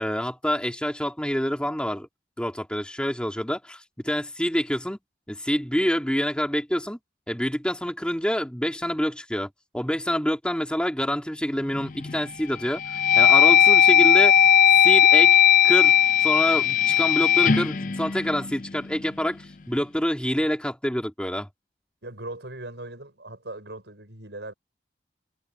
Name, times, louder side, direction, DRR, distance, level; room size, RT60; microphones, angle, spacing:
voice 1, 0.0-2.1 2.4-5.0 5.3-7.0 7.3-9.5 9.7-14.3 14.7-15.9 16.2-21.5, equal, 5° left, 2.9 m, -27 dB
sound 1, 11.7-12.2 12.7-18.9, left 8 dB, 45° left, 0.5 m, -18 dB
voice 2, 22.0-24.5, right 2 dB, 80° right, 5.8 m, -39 dB
head